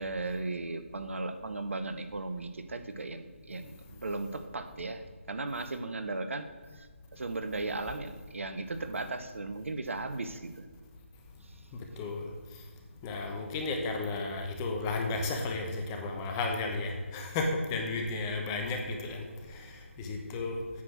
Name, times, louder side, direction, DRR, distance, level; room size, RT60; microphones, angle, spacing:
voice 1, 0.0-6.5 6.7-6.9 7.1-10.7 11.4-11.5, right 2 dB, 70° right, 9 dB, 0.9 m, -36 dB
voice 2, 13.0-19.2 20.0-20.6, left 3 dB, 20° left, 3 dB, 1.0 m, -33 dB
8.7 x 5.9 x 6.1 m, 1.5 s
figure-of-eight pair, 155°, 7 cm